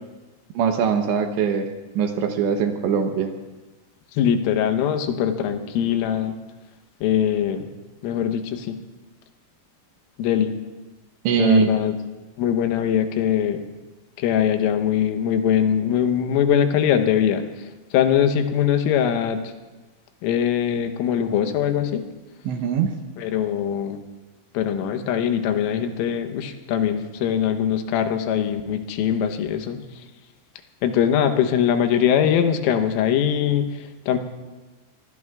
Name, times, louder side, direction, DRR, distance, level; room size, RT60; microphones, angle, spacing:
voice 1, 0.5-1.7 2.0-3.3 11.2-11.7 22.5-22.9, right 7 dB, 75° right, 5 dB, 2.9 m, -21 dB
voice 2, 4.2-6.4 7.0-7.7 8.0-8.8 10.2-10.5 11.4-11.9 12.4-13.6 14.2-17.4 17.9-19.5 20.2-22.1 23.2-24.0 24.6-29.8 30.8-34.2, left 9 dB, 90° left, 7 dB, 3.6 m, -22 dB
25.0 x 22.0 x 2.4 m, 1.2 s
omnidirectional pair, 5.7 m